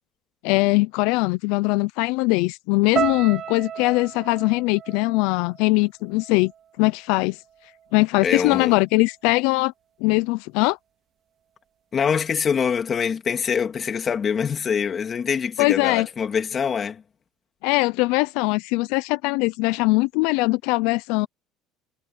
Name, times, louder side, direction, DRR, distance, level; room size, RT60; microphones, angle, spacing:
voice 1, 0.4-6.5 6.8-7.4 7.9-9.7 10.0-10.8 15.6-16.1 17.6-21.3, left 24 dB, 80° left, 0.5 m, -21 dB
sound 1, 3.0-7.2 7.4-8.2 8.8-9.0, right 9 dB, 45° right, 2.0 m, -33 dB
voice 2, 8.2-8.8 11.9-17.0, left 6 dB, 30° left, 2.8 m, -24 dB
cardioid pair, 125°, 0 cm